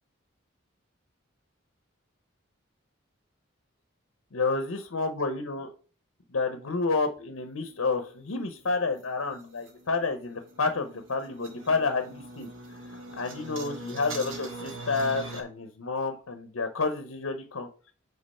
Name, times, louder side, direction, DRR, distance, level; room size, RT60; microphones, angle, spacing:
voice 1, 4.3-5.7 6.3-12.5 13.2-17.7, left 3 dB, 85° left, 7 dB, 0.8 m, -30 dB
sound 1, 7.5-15.4, right 2 dB, 70° right, 1.3 m, -43 dB
5.3 x 3.9 x 5.4 m, 0.39 s
head